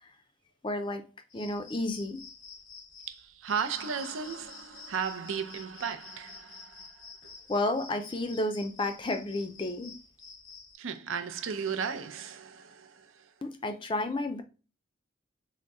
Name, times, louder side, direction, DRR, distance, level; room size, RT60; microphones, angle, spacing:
voice 1, 0.6-1.0 1.3-2.2 7.5-9.9 13.4-14.4, left 2 dB, 25° left, 0.4 m, -31 dB
sound 1, 1.3-10.8, left 4 dB, 85° left, 0.8 m, -49 dB
voice 2, 3.1-7.3 10.8-13.3, right 6 dB, 80° right, 0.5 m, -35 dB
3.9 x 2.1 x 3.5 m
head